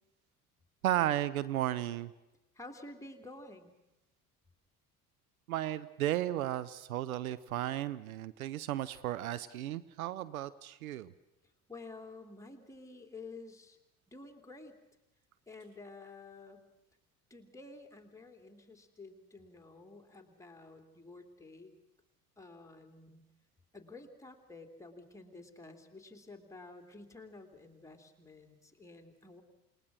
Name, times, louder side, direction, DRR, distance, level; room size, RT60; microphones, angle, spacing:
voice 1, 0.8-2.1 5.5-11.1, right 13 dB, 70° right, 15 dB, 0.8 m, -34 dB
voice 2, 2.5-3.7 11.7-13.8 14.1-14.8 15.5-16.6 17.3-21.7 22.4-23.2 23.7-29.4, left 3 dB, 5° left, 4 dB, 3.0 m, -51 dB
28.0 x 19.5 x 6.3 m, 0.94 s
figure-of-eight pair, 60°, 44 cm